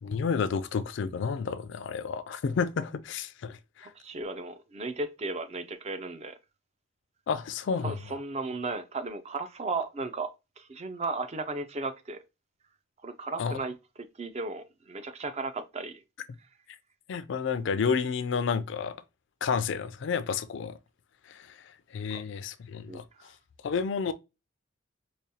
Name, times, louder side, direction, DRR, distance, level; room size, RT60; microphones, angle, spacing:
voice 1, 0.0-3.9 7.3-7.9 13.4-13.6 17.1-19.0 19.4-20.8 21.3-23.3 23.6-24.1, left 6 dB, 65° left, 0.4 m, -31 dB
voice 2, 3.8-6.4 7.8-10.3 10.6-12.2 13.0-13.8 14.2-16.0 22.9-23.3, right 3 dB, 35° right, 0.4 m, -35 dB
4.9 x 2.3 x 2.7 m
head